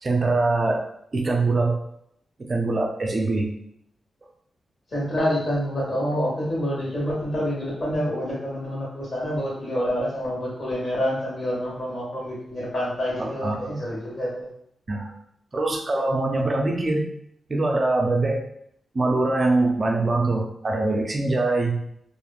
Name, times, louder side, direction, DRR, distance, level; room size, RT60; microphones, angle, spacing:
voice 1, 0.0-0.9 1.1-1.8 2.4-3.5 13.2-13.7 14.9-15.1 15.5-17.1 17.5-18.4 18.9-21.8, right 2 dB, 35° right, 1 dB, 0.5 m, -23 dB
voice 2, 4.9-14.5, equal, 45° left, -6 dB, 1.5 m, -27 dB
3.1 x 2.5 x 2.4 m, 0.70 s
wide cardioid pair, 110°, 0 cm